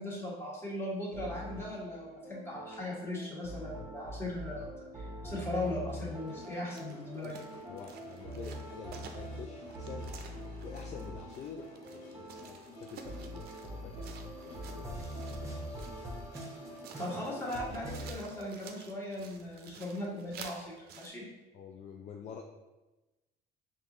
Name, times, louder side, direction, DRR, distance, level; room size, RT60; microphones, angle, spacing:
voice 1, 0.0-4.7 4.9-7.3 17.0-21.2, left 1 dB, 15° left, -5 dB, 1.5 m, -38 dB
sound 1, 1.1-18.1, right 1 dB, 15° right, 0.9 m, -44 dB
sound 2, 5.6-17.9, left 3 dB, 80° left, 1.3 m, -56 dB
sound 3, 6.4-21.1, right 6 dB, 70° right, 0.5 m, -52 dB
voice 2, 7.7-10.1 10.6-15.9 21.5-22.4, left 6 dB, 45° left, 3 dB, 0.4 m, -48 dB
5.2 x 2.6 x 3.0 m, 1.1 s
cardioid pair, 110°, 17 cm